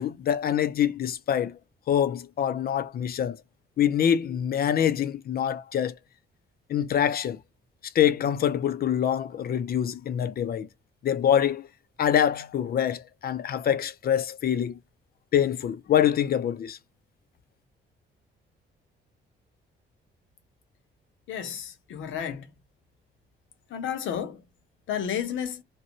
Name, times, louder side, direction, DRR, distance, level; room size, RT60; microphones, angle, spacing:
voice 1, 0.0-1.6 1.9-3.4 3.8-5.9 6.7-7.4 7.9-10.7 11.0-11.7 12.0-14.8 15.3-16.8, left 9 dB, 50° left, 0.5 m, -25 dB
voice 2, 21.3-22.5 23.7-24.4 24.9-25.6, left 8 dB, 75° left, 0.8 m, -32 dB
2.7 x 2.1 x 2.9 m
cardioid pair, 90°, 20 cm